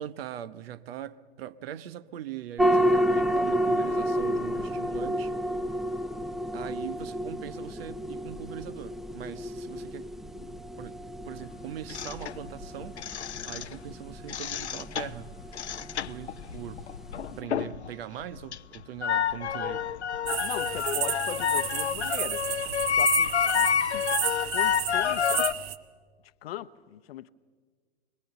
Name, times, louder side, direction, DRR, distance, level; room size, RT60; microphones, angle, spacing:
voice 1, 0.0-5.3 6.5-10.1 10.8-13.0 13.4-15.3 16.1-16.8 17.4-19.8, right 11 dB, 65° right, 1.0 m, -41 dB
sound 1, 2.6-17.4, equal, ahead, 0.7 m, -31 dB
sound 2, 11.9-13.9 14.2-17.9 18.2-25.5, left 8 dB, 90° left, 0.7 m, -29 dB
sound 3, 20.3-25.8, right 12 dB, 40° right, 1.4 m, -32 dB
voice 2, 20.4-22.5 23.0-23.7 24.3-25.4 26.4-27.3, left 12 dB, 65° left, 0.9 m, -39 dB
25.0 x 21.0 x 7.0 m
hypercardioid pair, 105°, 33 cm